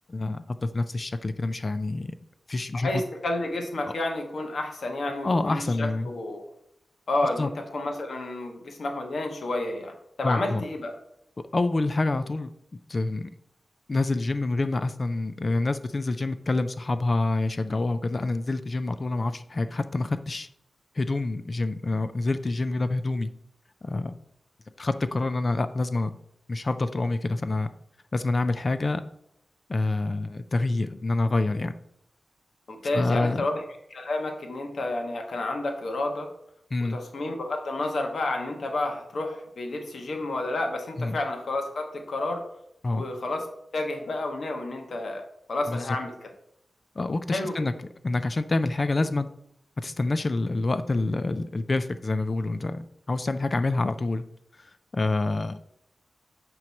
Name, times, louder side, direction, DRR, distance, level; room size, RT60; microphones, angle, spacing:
voice 1, 0.1-2.1 2.5-3.0 5.2-6.1 7.4-7.5 10.2-10.6 11.5-12.5 12.9-13.3 13.9-20.5 21.0-23.3 23.8-24.2 24.8-26.1 26.5-27.7 28.1-29.0 29.7-31.7 32.9-33.4 36.7-37.0 41.0-41.2 42.8-43.0 45.7-45.8 47.0-47.7 48.0-49.3 49.8-54.2 54.6-55.6, left 2 dB, 35° left, 11 dB, 0.4 m, -27 dB
voice 2, 2.8-6.5 7.1-10.9 32.7-33.6 33.9-36.3 36.8-42.4 42.9-43.5 43.7-45.2 45.5-46.3 47.3-47.7, left 2 dB, 60° left, 3 dB, 1.2 m, -30 dB
8.8 x 3.1 x 6.3 m, 0.76 s
wide cardioid pair, 145°, 0 cm